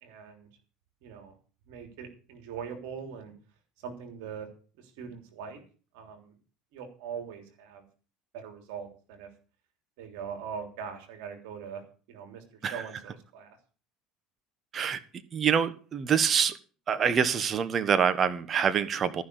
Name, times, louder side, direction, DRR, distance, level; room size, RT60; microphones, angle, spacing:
voice 1, 0.0-0.5 1.0-1.3 1.7-3.3 3.8-4.5 4.8-5.6 5.9-6.3 6.7-7.8 8.3-9.3 10.0-11.8 12.1-12.4 12.7-13.6, right 7 dB, 75° right, 5 dB, 3.3 m, -41 dB
voice 2, 15.3-16.5 16.9-19.2, right 7 dB, 40° right, 12 dB, 1.3 m, -25 dB
14.0 x 6.3 x 8.3 m, 0.39 s
hypercardioid pair, 80°, 0 cm